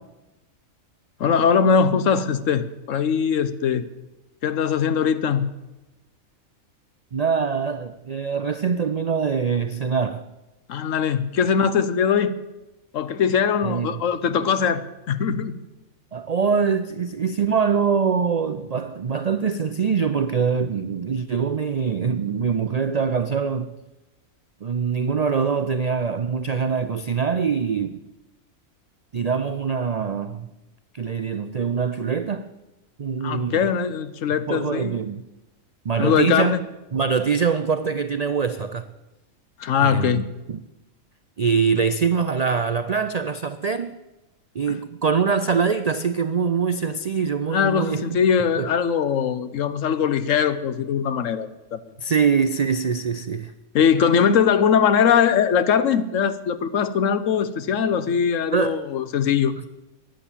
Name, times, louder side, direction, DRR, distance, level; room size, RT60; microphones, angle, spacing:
voice 1, 1.2-3.8 4.4-5.5 10.7-12.4 12.9-15.6 33.2-34.9 36.0-36.6 39.6-40.2 44.7-44.8 47.5-51.8 53.7-59.5, left 7 dB, 70° left, 1.1 m, -21 dB
voice 2, 7.1-10.2 11.4-11.5 13.6-14.0 16.1-23.7 24.6-28.0 29.1-30.5 30.9-32.5 33.0-33.7 34.5-35.2 35.8-36.5 36.9-38.9 39.8-40.6 41.4-43.9 44.5-48.0 48.6-48.7 52.0-53.5 58.5-58.8, right 6 dB, 70° right, 0.3 m, -23 dB
15.5 x 10.0 x 7.3 m
omnidirectional pair, 1.4 m